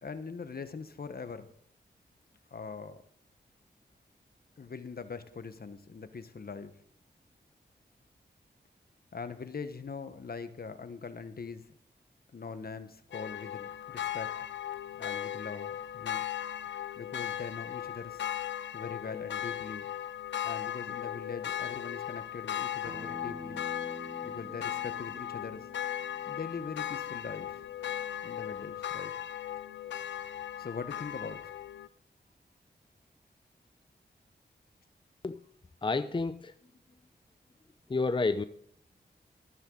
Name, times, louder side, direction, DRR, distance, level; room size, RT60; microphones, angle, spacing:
voice 1, 0.0-1.5 2.5-3.0 4.6-6.7 9.1-11.8 12.3-14.4 15.0-16.3 17.0-18.3 18.7-19.9 20.4-23.6 24.2-25.7 26.3-27.6 28.2-29.1 30.6-31.5, left 5 dB, 60° left, 11 dB, 1.2 m, -42 dB
sound 1, 13.1-31.9, left 11 dB, 85° left, 0.5 m, -37 dB
Acoustic guitar, 22.8-28.0, equal, 25° right, 1.9 m, -49 dB
voice 2, 35.8-36.5 37.9-38.4, left 3 dB, 25° left, 11 dB, 0.6 m, -29 dB
14.0 x 12.0 x 3.9 m, 0.67 s
cardioid pair, 55°, 18 cm